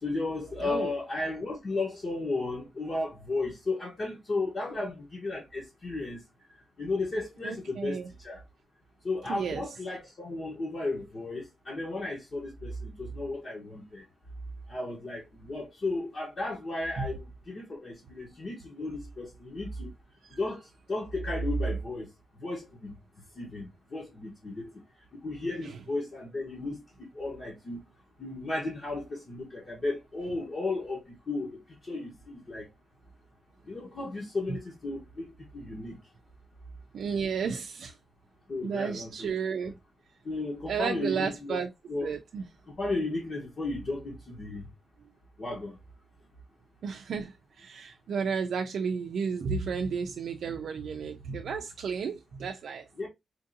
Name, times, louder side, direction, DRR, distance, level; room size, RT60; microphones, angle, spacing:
voice 1, 0.0-6.2 6.8-8.4 9.0-14.0 14.7-19.9 20.3-22.1 22.4-23.0 23.3-24.7 25.2-27.8 28.2-32.7 33.7-35.3 35.5-36.0 38.5-39.3 40.2-41.6 41.9-42.1 42.8-44.7 45.4-45.8 53.0-53.1, left 2 dB, 35° left, 1.0 m, -34 dB
voice 2, 0.6-0.9 7.4-8.1 9.3-9.6 17.0-17.1 25.6-25.7 36.9-38.0 38.6-39.7 40.7-41.7 42.0-42.5 46.8-52.9, right 6 dB, 70° right, 0.5 m, -32 dB
4.4 x 2.6 x 2.6 m
wide cardioid pair, 175°, 0 cm